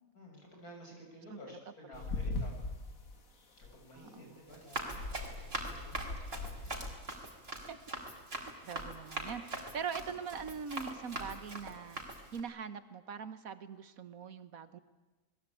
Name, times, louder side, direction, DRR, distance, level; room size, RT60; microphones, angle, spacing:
voice 1, 0.1-2.6 3.6-7.0, equal, 85° left, 1 dB, 7.4 m, -53 dB
sound 1, 1.9-3.2 3.6-3.8 4.9-7.0, left 2 dB, 65° left, 2.5 m, -40 dB
voice 2, 3.9-4.4 7.7-7.8 8.6-14.8, right 6 dB, 70° right, 12 dB, 1.7 m, -42 dB
Run, 4.5-12.4, right 2 dB, 40° right, 4.0 m, -42 dB
29.0 x 20.5 x 8.5 m, 1.2 s
omnidirectional pair, 1.5 m